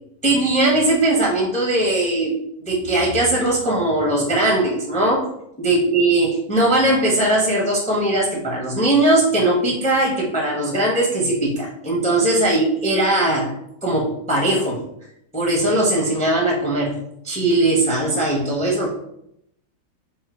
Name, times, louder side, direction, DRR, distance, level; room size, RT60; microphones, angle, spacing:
voice 1, 0.2-5.3 5.6-13.5 13.8-14.8 15.3-17.0 17.2-18.9, right 1 dB, 5° left, -2 dB, 0.7 m, -19 dB
3.9 x 3.1 x 4.3 m, 0.75 s
omnidirectional pair, 2.1 m